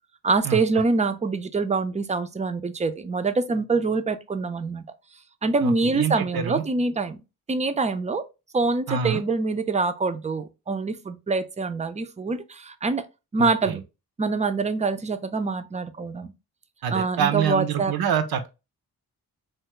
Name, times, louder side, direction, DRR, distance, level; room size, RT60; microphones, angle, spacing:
voice 1, 0.2-4.8 5.4-7.2 7.5-8.2 8.5-13.1 13.3-13.8 14.2-16.3 16.9-17.9, right 3 dB, 20° right, 0.4 m, -25 dB
voice 2, 5.6-6.6 8.9-9.2 13.4-13.8 16.8-18.5, right 7 dB, 65° right, 0.6 m, -26 dB
2.9 x 2.3 x 2.9 m
supercardioid pair, 45°, 40 cm